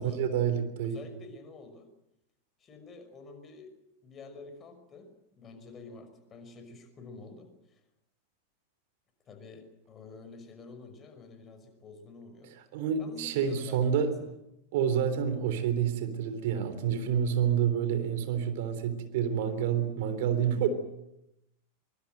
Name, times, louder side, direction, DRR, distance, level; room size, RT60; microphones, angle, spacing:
voice 1, 0.0-1.0 12.7-14.1 14.7-20.7, right 8 dB, 50° right, 10 dB, 3.5 m, -28 dB
voice 2, 0.8-1.9 2.6-3.7 4.0-7.8 9.3-12.5 13.0-13.8 14.2-14.3, left 3 dB, 25° left, 8 dB, 5.7 m, -48 dB
24.5 x 23.5 x 7.9 m, 0.83 s
figure-of-eight pair, 90°, 0 cm